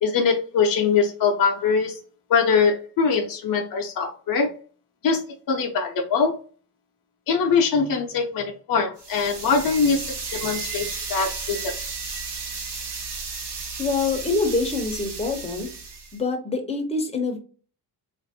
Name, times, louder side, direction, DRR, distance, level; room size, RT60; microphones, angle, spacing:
voice 1, 0.0-2.0 2.3-4.5 5.0-5.2 5.5-6.3 7.3-11.7, left 5 dB, 55° left, 1 dB, 0.6 m, -22 dB
sound 1, 9.0-16.2, right 4 dB, 70° right, 1.0 m, -33 dB
voice 2, 13.8-15.7 16.1-17.4, left 3 dB, 15° left, 3 dB, 0.6 m, -25 dB
3.8 x 2.5 x 2.6 m, 0.39 s
wide cardioid pair, 150°, 41 cm